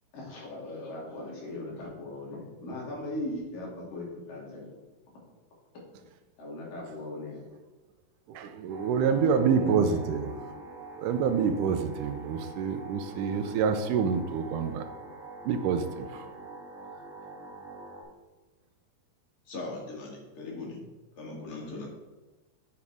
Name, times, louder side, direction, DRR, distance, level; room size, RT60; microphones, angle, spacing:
voice 1, 0.1-4.7 6.4-7.5 9.0-10.4, left 1 dB, 90° left, -4 dB, 4.2 m, -39 dB
voice 2, 8.3-10.3 11.0-14.8 15.5-16.3, right 6 dB, 80° right, 9 dB, 2.1 m, -27 dB
sound 1, 8.7-18.0, right 3 dB, 50° right, 1.8 m, -45 dB
voice 3, 19.5-20.8 21.2-21.9, left 2 dB, 45° left, -1 dB, 2.4 m, -39 dB
7.9 x 7.2 x 3.5 m, 1.2 s
omnidirectional pair, 3.8 m